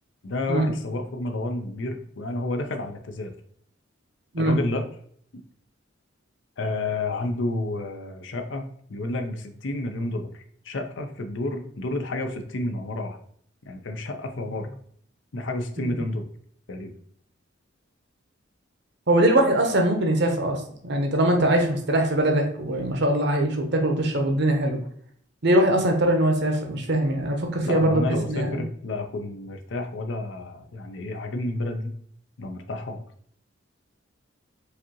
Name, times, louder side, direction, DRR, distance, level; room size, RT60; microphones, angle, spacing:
voice 1, 0.2-3.3 4.4-4.9 5.3-5.4 6.6-13.2 13.7-14.8 15.3-16.2 16.7-16.9 27.6-31.9 32.4-33.0, left 2 dB, 70° left, 6 dB, 0.6 m, -30 dB
voice 2, 19.1-24.8 25.4-28.6, right 1 dB, 60° right, 3 dB, 0.8 m, -22 dB
4.9 x 2.7 x 2.9 m, 0.63 s
head